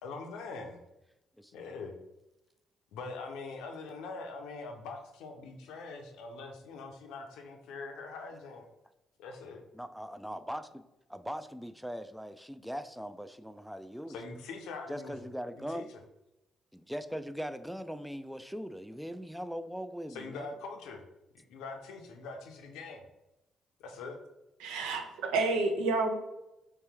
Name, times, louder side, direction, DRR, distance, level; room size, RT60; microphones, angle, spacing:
voice 1, 0.0-0.8 1.5-1.9 2.9-8.7 9.2-9.6 14.1-15.3 15.6-15.8 20.1-21.0 21.5-23.0 23.8-24.2, left 4 dB, 75° left, 4 dB, 0.6 m, -43 dB
voice 2, 9.7-10.8 11.1-14.3 14.9-15.9 16.7-20.5, equal, ahead, 11 dB, 0.3 m, -40 dB
voice 3, 24.6-26.1, right 3 dB, 80° right, 4 dB, 0.5 m, -29 dB
3.3 x 3.0 x 3.3 m, 0.94 s
hypercardioid pair, 50°, 0 cm